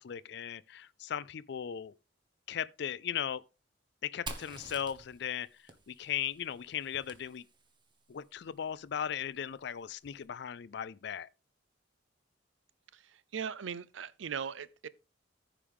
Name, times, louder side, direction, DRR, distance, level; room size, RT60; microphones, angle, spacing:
voice 1, 0.0-1.9 2.5-3.4 4.0-5.5 5.9-7.4 8.1-11.3, left 9 dB, 60° left, 0.4 m, -37 dB
Fire, 4.3-7.9, right 3 dB, 25° right, 1.2 m, -48 dB
voice 2, 12.9-14.9, right 7 dB, 85° right, 0.5 m, -39 dB
15.0 x 5.0 x 3.5 m
head